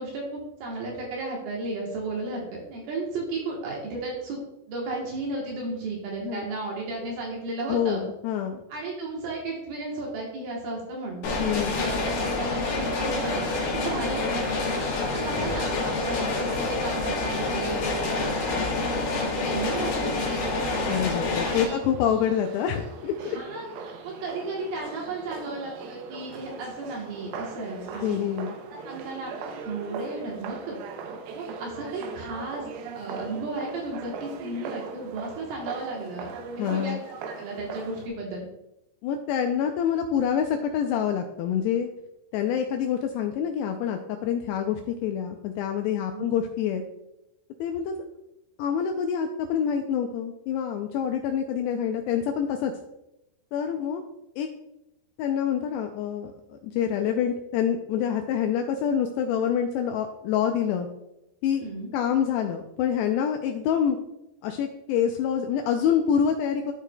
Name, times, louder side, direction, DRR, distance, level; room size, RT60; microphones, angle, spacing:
voice 1, 0.0-4.4 4.7-8.0 8.7-14.5 14.9-20.9 21.4-21.8 23.2-28.2 28.7-30.8 31.3-36.3 36.6-38.5 46.1-46.3 61.6-61.9, right 2 dB, 70° right, -2 dB, 2.6 m, -34 dB
voice 2, 7.7-8.6 11.4-11.8 20.9-23.4 28.0-28.6 36.6-37.0 39.0-41.9 42.3-46.8 47.6-48.0 48.6-52.7 53.5-54.0 54.4-54.5 55.2-60.9 61.4-61.6 61.9-64.0 64.4-66.7, left 8 dB, 85° left, 5 dB, 2.4 m, -26 dB
sound 1, 11.2-21.6, left 3 dB, 65° left, 2.5 m, -27 dB
sound 2, 19.6-38.1, right 5 dB, 85° right, 2.1 m, -40 dB
13.0 x 4.7 x 2.2 m, 0.88 s
omnidirectional pair, 5.2 m